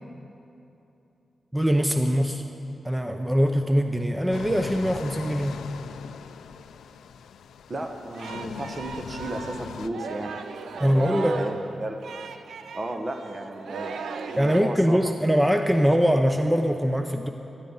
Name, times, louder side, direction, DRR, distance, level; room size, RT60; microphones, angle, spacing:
voice 1, 1.5-2.4 2.8-5.7 10.8-11.4 14.4-17.3, equal, 10° right, 5 dB, 0.8 m, -22 dB
sound 1, 4.3-9.9, left 7 dB, 90° left, 0.4 m, -40 dB
voice 2, 7.7-10.4 10.7-12.0 12.7-14.0 14.3-15.0, right 1 dB, 45° right, 5 dB, 1.4 m, -33 dB
Singing, 7.7-14.6, right 5 dB, 85° right, 0.6 m, -37 dB
16.5 x 14.0 x 4.1 m, 2.9 s
cardioid pair, 45°, 0 cm